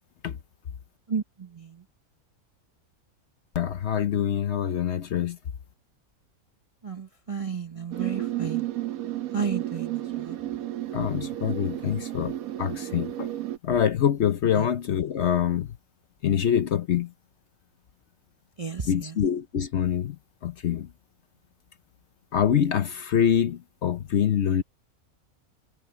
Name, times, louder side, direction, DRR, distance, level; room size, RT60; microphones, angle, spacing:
voice 1, 1.1-1.8 6.8-8.7 9.3-10.4 14.6-14.7 18.6-19.2, right 6 dB, 35° right, 0.6 m, -33 dB
voice 2, 3.5-5.4 10.9-13.3 13.6-15.7 16.2-17.1 18.9-20.2 20.4-20.9 22.3-24.6, left 9 dB, 55° left, 0.9 m, -25 dB
sound 1, 7.9-13.6, right 14 dB, 75° right, 1.1 m, -32 dB
omnidirectional pair, 1.5 m